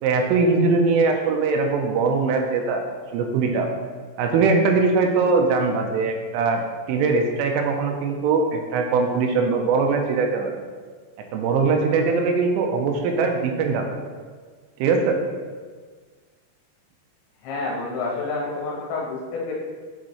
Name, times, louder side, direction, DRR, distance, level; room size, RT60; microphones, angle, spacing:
voice 1, 0.0-2.9 3.1-3.7 4.2-6.6 6.9-10.6 11.3-14.0 14.8-15.2, right 4 dB, 85° right, 3 dB, 3.2 m, -21 dB
voice 2, 17.4-19.5, left 3 dB, 75° left, -3 dB, 3.1 m, -28 dB
8.7 x 5.2 x 3.1 m, 1.5 s
omnidirectional pair, 5.7 m